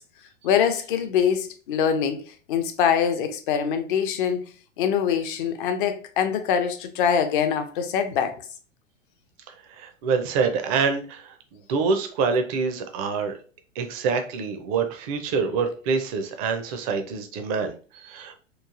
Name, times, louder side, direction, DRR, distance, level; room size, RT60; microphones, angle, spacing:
voice 1, 0.4-4.4 4.8-8.4, left 7 dB, 45° left, 0.5 m, -24 dB
voice 2, 9.7-13.3 13.8-18.4, right 5 dB, 30° right, 0.4 m, -26 dB
3.0 x 2.4 x 2.4 m
figure-of-eight pair, 105°, 38 cm